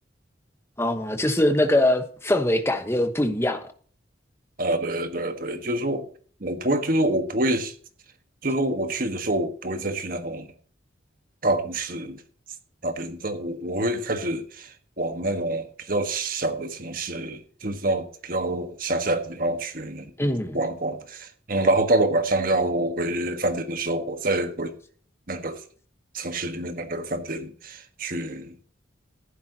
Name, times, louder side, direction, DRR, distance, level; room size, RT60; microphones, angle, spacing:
voice 1, 0.8-3.6 20.2-20.6, left 1 dB, 15° left, 1.2 m, -22 dB
voice 2, 4.6-6.1 6.4-7.7 8.4-10.5 11.4-12.2 12.8-20.1 20.5-24.8 25.3-25.6 26.1-28.6, right 1 dB, 50° right, 1.4 m, -26 dB
15.0 x 12.0 x 2.9 m
head